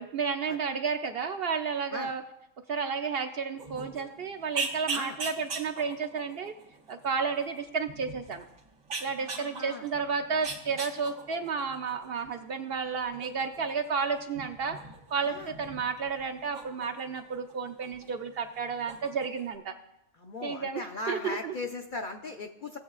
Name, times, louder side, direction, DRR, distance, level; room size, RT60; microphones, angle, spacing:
voice 1, 0.0-2.2 2.7-6.5 6.9-8.4 9.0-14.8 15.1-19.7 20.4-21.5, right 5 dB, 60° right, 7 dB, 0.6 m, -32 dB
sound 1, 3.6-18.2 18.4-19.6, right 4 dB, 85° right, 1.6 m, -41 dB
voice 2, 9.2-9.8 15.3-15.5 20.2-22.8, left 3 dB, 55° left, 4 dB, 0.6 m, -38 dB
16.0 x 7.8 x 2.4 m, 0.85 s
omnidirectional pair, 1.3 m